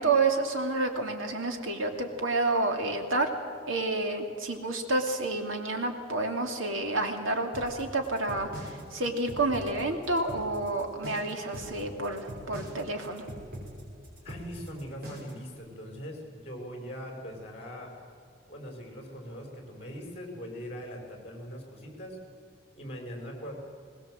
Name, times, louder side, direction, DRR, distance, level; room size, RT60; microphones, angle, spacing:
voice 1, 0.0-3.3 3.7-13.2, right 2 dB, 85° right, 4 dB, 2.6 m, -29 dB
sound 1, 7.5-15.5, equal, 50° right, 5.9 m, -42 dB
voice 2, 14.2-17.9 18.5-22.2 22.7-23.5, equal, 30° left, 2 dB, 5.1 m, -41 dB
21.5 x 20.0 x 7.7 m, 2.5 s
head